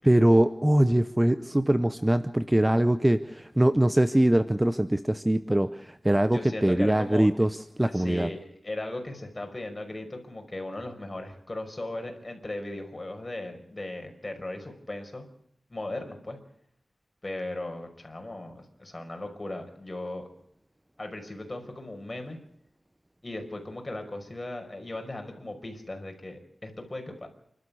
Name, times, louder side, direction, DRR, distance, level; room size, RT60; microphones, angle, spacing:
voice 1, 0.0-8.3, right 1 dB, 15° right, 11 dB, 0.8 m, -23 dB
voice 2, 6.3-7.3 7.8-15.3 15.7-16.4 17.2-20.3 21.0-22.4 23.2-27.3, left 1 dB, 25° left, 4 dB, 5.5 m, -37 dB
29.0 x 13.0 x 8.5 m, 0.71 s
wide cardioid pair, 85°, 0 cm